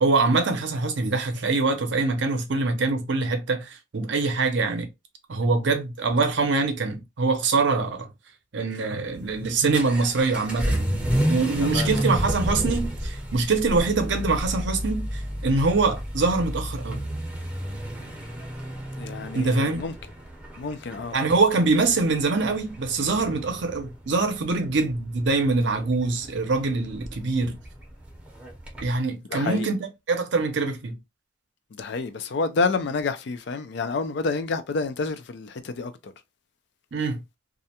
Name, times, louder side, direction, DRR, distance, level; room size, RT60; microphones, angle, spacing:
voice 1, 0.0-4.9 5.3-8.1 8.5-10.9 11.3-17.0 19.3-19.8 21.1-27.6 28.8-31.0 36.9-37.2, right 3 dB, 60° right, 0.6 m, -24 dB
Vehicle / Accelerating revving vroom, 9.1-28.9, equal, 5° right, 0.6 m, -31 dB
voice 2, 11.6-12.1 19.0-19.9 20.6-21.2 29.3-29.7 31.7-36.1, left 4 dB, 60° left, 0.4 m, -29 dB
2.4 x 2.1 x 2.7 m
head